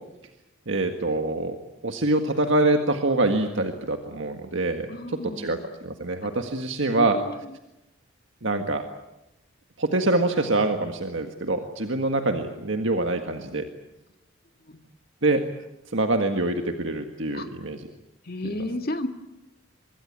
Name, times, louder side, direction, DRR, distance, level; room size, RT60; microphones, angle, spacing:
voice 1, 0.7-1.6 1.8-7.2 8.4-8.8 9.8-13.6 15.2-15.4 15.9-17.9 18.4-18.5, right 2 dB, 65° right, 5 dB, 1.7 m, -25 dB
voice 2, 4.9-5.6 6.9-7.3 17.3-17.5 18.3-19.1, left 1 dB, 45° left, 6 dB, 2.1 m, -32 dB
25.5 x 22.5 x 8.7 m, 0.94 s
head